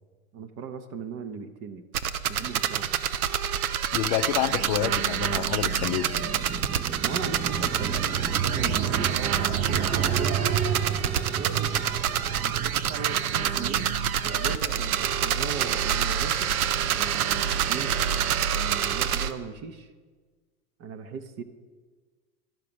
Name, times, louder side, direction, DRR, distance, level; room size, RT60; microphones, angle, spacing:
voice 1, 0.3-1.8 2.3-2.9 7.0-10.6 11.1-11.9 12.3-13.9 14.2-18.0 18.5-19.9 20.8-21.4, right 5 dB, 35° right, 9 dB, 0.9 m, -38 dB
sound 1, 1.9-19.3, right 9 dB, 75° right, 0.7 m, -27 dB
voice 2, 3.9-6.1, left 12 dB, 45° left, 10 dB, 0.5 m, -28 dB
sound 2, 5.6-14.5, right 7 dB, 20° right, 0.5 m, -31 dB
12.0 x 4.8 x 7.0 m, 1.4 s
hypercardioid pair, 105°, 44 cm